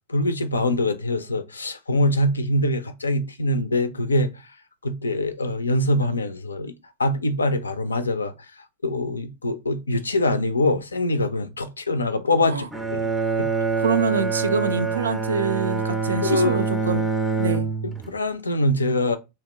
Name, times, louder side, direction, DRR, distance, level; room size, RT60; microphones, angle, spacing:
voice 1, 0.1-4.3 4.8-6.7 7.0-8.3 8.8-13.1 13.4-13.5 16.2-16.6 17.8-19.2, left 1 dB, 75° left, 0.4 m, -23 dB
Bowed string instrument, 12.7-18.2, right 4 dB, 5° right, 0.4 m, -25 dB
voice 2, 13.8-17.0 17.4-17.7, right 4 dB, 70° right, 0.3 m, -25 dB
2.8 x 2.0 x 3.4 m
figure-of-eight pair, 90°, 0 cm